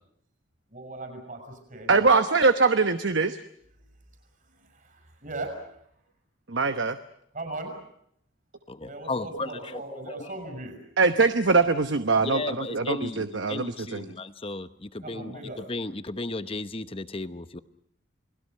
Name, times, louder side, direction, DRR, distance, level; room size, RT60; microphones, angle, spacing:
voice 1, 0.7-2.0 4.5-5.6 7.3-7.7 8.8-10.7 15.0-15.6, right 2 dB, 40° right, 4 dB, 6.4 m, -38 dB
voice 2, 1.9-3.4 6.5-7.0 11.0-14.0, right 4 dB, 60° right, 9 dB, 1.0 m, -22 dB
voice 3, 8.7-9.8 12.2-17.6, left 2 dB, 25° left, 12 dB, 0.9 m, -34 dB
29.5 x 20.0 x 6.6 m, 0.70 s
head